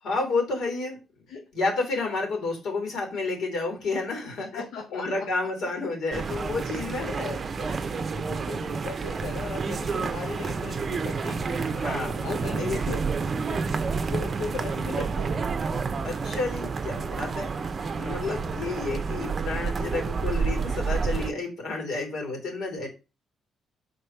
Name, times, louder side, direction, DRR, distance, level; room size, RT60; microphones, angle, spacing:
voice 1, 0.0-1.0 1.5-4.6 4.9-7.1 11.8-12.8 16.0-17.5 17.9-22.9, left 3 dB, 75° left, 1 dB, 2.9 m, -30 dB
voice 2, 4.4-5.3 6.4-6.6 6.9-11.7 12.2-13.0 13.5-13.7 14.1-15.4 18.5-18.7, left 4 dB, 90° left, 2 dB, 0.8 m, -38 dB
sound 1, 6.1-21.3, right 5 dB, 40° right, 0.6 m, -29 dB
5.2 x 4.0 x 4.5 m, 0.29 s
cardioid pair, 90°, 0 cm